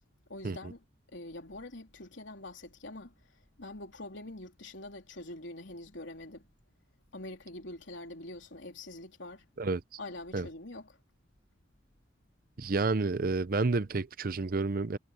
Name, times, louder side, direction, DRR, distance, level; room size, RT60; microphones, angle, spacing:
voice 1, 0.3-0.8 1.1-3.1 3.6-6.5 7.1-9.5 10.0-11.0, left 2 dB, 70° left, 3.7 m, -44 dB
voice 2, 12.6-15.0, right 3 dB, 50° right, 0.6 m, -30 dB
head